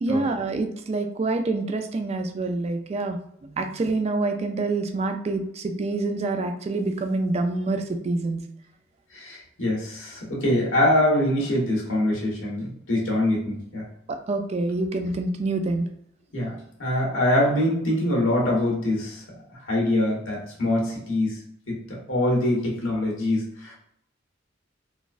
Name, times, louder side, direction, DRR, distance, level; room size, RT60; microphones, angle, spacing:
voice 1, 0.0-3.2 3.4-8.4 14.1-15.9, right 2 dB, 35° right, 6 dB, 0.3 m, -26 dB
voice 2, 9.1-13.8 16.3-19.2 19.5-21.4 21.7-23.7, left 1 dB, 85° left, -3 dB, 1.3 m, -24 dB
3.9 x 2.4 x 2.5 m, 0.70 s
head